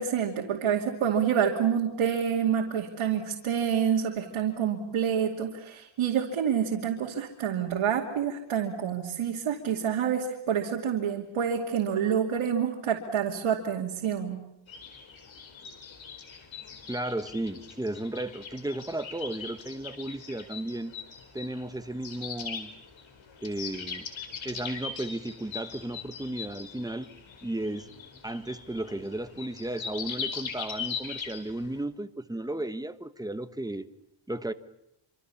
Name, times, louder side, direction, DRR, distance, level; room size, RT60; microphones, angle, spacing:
voice 1, 0.0-14.4, right 8 dB, 90° right, 2.7 m, -28 dB
sound 1, 14.7-31.8, left 6 dB, 65° left, 4.6 m, -41 dB
voice 2, 16.9-20.9 21.3-22.7 23.4-24.1 24.4-27.1 27.4-27.9 28.2-33.9 34.3-34.5, right 1 dB, 10° right, 1.1 m, -34 dB
26.5 x 26.0 x 7.1 m
wide cardioid pair, 140°, 49 cm